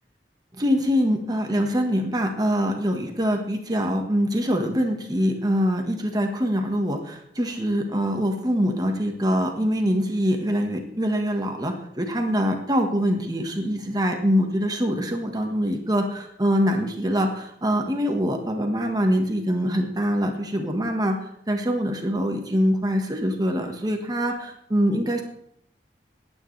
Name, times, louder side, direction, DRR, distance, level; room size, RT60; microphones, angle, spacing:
voice 1, 0.6-21.2 21.5-25.2, equal, 20° right, 3 dB, 1.4 m, -24 dB
19.0 x 9.6 x 3.3 m, 0.71 s
head